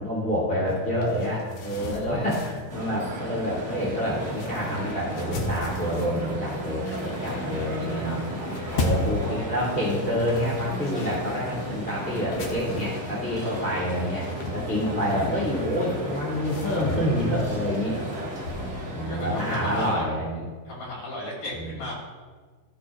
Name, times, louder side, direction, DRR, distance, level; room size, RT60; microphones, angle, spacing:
voice 1, 0.0-8.2 8.7-18.0 18.9-20.4 21.6-21.7, equal, 5° left, -9 dB, 2.1 m, -28 dB
sound 1, 0.7-18.7, left 2 dB, 70° left, 1.5 m, -37 dB
voice 2, 1.8-2.3 8.7-9.6 18.5-20.0 20.7-21.9, left 1 dB, 90° left, -5 dB, 4.5 m, -36 dB
sound 2, 2.7-20.0, right 1 dB, 30° right, 1.5 m, -34 dB
15.0 x 6.0 x 2.4 m, 1.4 s
omnidirectional pair, 3.8 m